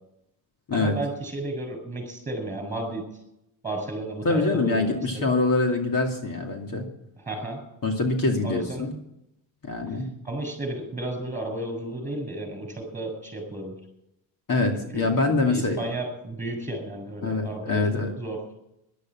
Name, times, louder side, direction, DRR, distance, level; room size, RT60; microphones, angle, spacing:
voice 1, 0.7-3.0 3.6-5.3 7.2-7.6 8.4-8.8 10.2-13.8 14.9-15.1 15.4-18.4, right 1 dB, 15° right, 6 dB, 6.9 m, -33 dB
voice 2, 4.2-6.8 7.8-8.9 9.6-10.1 14.5-15.8 17.2-18.1, left 3 dB, 45° left, 2 dB, 2.5 m, -24 dB
13.5 x 12.0 x 7.6 m, 0.81 s
cardioid pair, 105°, 47 cm